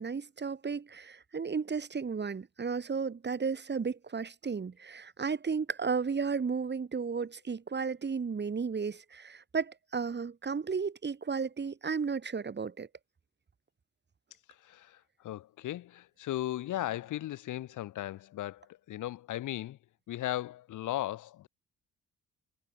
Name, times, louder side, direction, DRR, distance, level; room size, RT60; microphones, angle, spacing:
voice 1, 0.0-12.9, right 5 dB, 35° right, 3.8 m, -34 dB
voice 2, 14.6-19.8 20.1-21.5, left 14 dB, 80° left, 2.6 m, -37 dB
cardioid pair, 90°, 30 cm